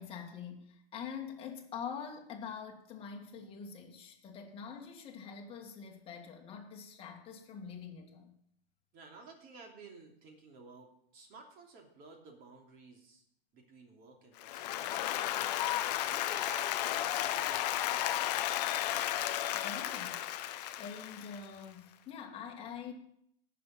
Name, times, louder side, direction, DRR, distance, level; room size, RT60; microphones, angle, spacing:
voice 1, 0.0-8.4 19.5-20.2 20.8-22.9, left 6 dB, 20° left, 0 dB, 1.9 m, -45 dB
voice 2, 8.9-13.2 13.5-15.2 15.9-18.4, right 4 dB, 30° right, 1 dB, 2.9 m, -54 dB
Applause, 14.4-21.6, left 13 dB, 40° left, 0.8 m, -33 dB
18.0 x 6.8 x 4.4 m, 0.68 s
hypercardioid pair, 140°, 31 cm